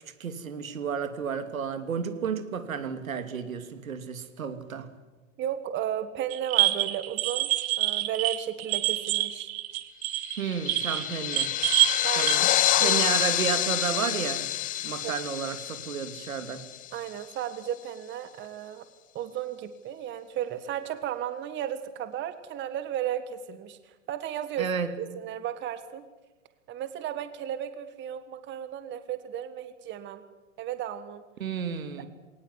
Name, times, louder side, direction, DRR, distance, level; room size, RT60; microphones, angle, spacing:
voice 1, 0.2-4.9 10.4-11.5 12.2-12.5 12.8-14.5 14.8-16.6 24.6-24.9 31.4-32.1, right 7 dB, 80° right, 10 dB, 2.8 m, -32 dB
voice 2, 5.4-7.5 7.8-9.5 12.0-12.5 12.8-13.1 15.0-15.1 16.9-18.8 19.1-24.7 25.0-26.0 26.7-30.2 30.6-31.2, right 10 dB, 25° right, 11 dB, 1.6 m, -34 dB
sound 1, 6.3-12.4, right 17 dB, 50° right, 1.9 m, -27 dB
sound 2, 10.2-17.1, left 13 dB, 20° left, 0.7 m, -28 dB
22.0 x 19.0 x 9.7 m, 1.3 s
hypercardioid pair, 115°, 41 cm